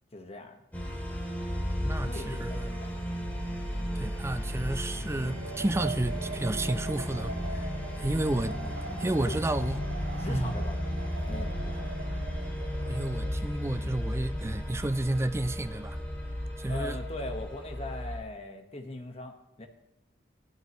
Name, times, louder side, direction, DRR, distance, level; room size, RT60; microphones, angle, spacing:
voice 1, 0.1-0.6 1.9-3.1 8.0-9.4 10.2-10.8 11.3-11.9 16.7-19.7, left 2 dB, 35° left, 1.4 m, -41 dB
sound 1, 0.7-18.2, equal, 10° left, 2.9 m, -34 dB
voice 2, 1.8-2.7 3.9-9.8 10.3-10.6 12.9-16.0 16.6-17.0, right 1 dB, 15° right, 0.4 m, -31 dB
Wind, 5.0-13.5, right 3 dB, 75° right, 0.7 m, -42 dB
16.5 x 12.5 x 3.1 m
head